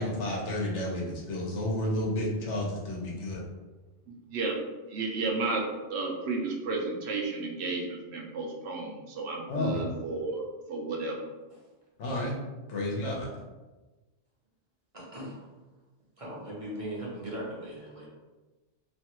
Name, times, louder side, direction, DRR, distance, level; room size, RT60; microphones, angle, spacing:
voice 1, 0.0-3.4 9.5-9.8 12.0-12.3 12.7-13.3, left 1 dB, 85° left, -2 dB, 1.1 m, -31 dB
voice 2, 4.1-4.6 4.9-5.6 5.9-11.2, right 3 dB, 70° right, 0 dB, 0.8 m, -32 dB
voice 3, 14.9-15.4 16.2-18.1, right 1 dB, 40° right, -5 dB, 0.6 m, -39 dB
3.0 x 2.3 x 2.9 m, 1.2 s
omnidirectional pair, 1.2 m